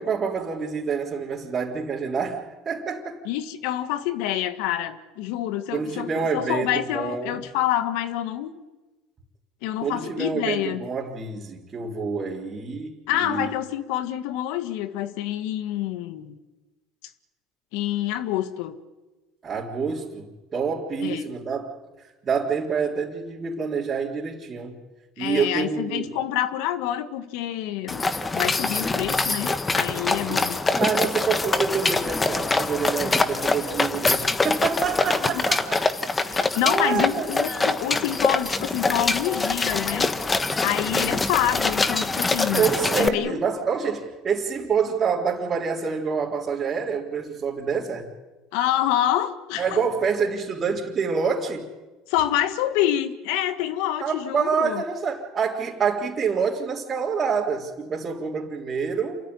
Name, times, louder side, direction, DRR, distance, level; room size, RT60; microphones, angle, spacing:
voice 1, 0.0-3.2 5.7-7.4 9.8-13.5 19.4-24.8 25.2-26.2 30.3-35.9 36.1-37.3 40.9-41.2 42.5-48.1 49.6-51.7 54.0-59.2, right 6 dB, 35° right, -6 dB, 3.7 m, -27 dB
voice 2, 3.3-8.6 9.6-10.8 13.1-16.4 17.7-18.8 21.0-21.3 25.2-28.0 28.3-30.6 35.2-35.3 36.3-40.2 40.6-42.7 43.0-43.4 48.5-49.8 52.1-54.8, left 12 dB, 75° left, 10 dB, 1.8 m, -27 dB
sound 1, 27.9-43.1, left 3 dB, 20° left, 1.3 m, -24 dB
28.0 x 14.0 x 9.8 m, 1.2 s
supercardioid pair, 90°, 0 cm